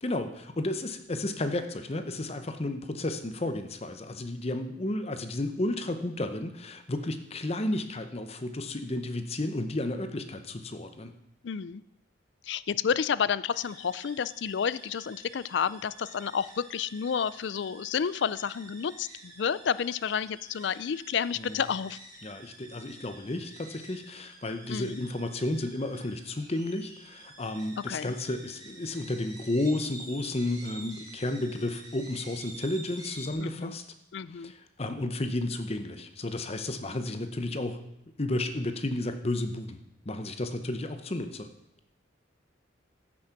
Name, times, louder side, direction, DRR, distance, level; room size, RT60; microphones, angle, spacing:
voice 1, 0.0-11.1 21.4-21.6 22.2-33.8 34.3-37.8 38.2-39.8 40.1-41.5, left 1 dB, 30° left, 9 dB, 0.7 m, -32 dB
voice 2, 11.4-11.8 12.4-22.0 24.7-25.0 27.9-28.1 33.4-33.8 34.1-34.5, left 7 dB, 60° left, 17 dB, 0.4 m, -30 dB
sound 1, 13.5-33.3, right 2 dB, 20° right, 2.2 m, -49 dB
14.5 x 6.3 x 5.9 m, 0.81 s
head